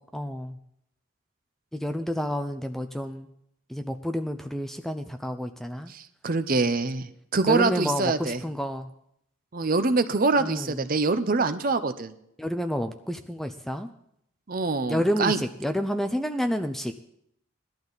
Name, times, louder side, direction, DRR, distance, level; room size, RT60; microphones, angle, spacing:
voice 1, 0.1-0.6 1.7-3.3 3.7-5.9 7.5-8.9 10.4-10.8 12.4-13.9 14.9-16.9, equal, ahead, 7 dB, 0.5 m, -29 dB
voice 2, 5.9-8.4 9.5-12.1 14.5-15.4, right 3 dB, 40° right, 11 dB, 0.7 m, -25 dB
17.5 x 12.0 x 4.0 m, 0.74 s
head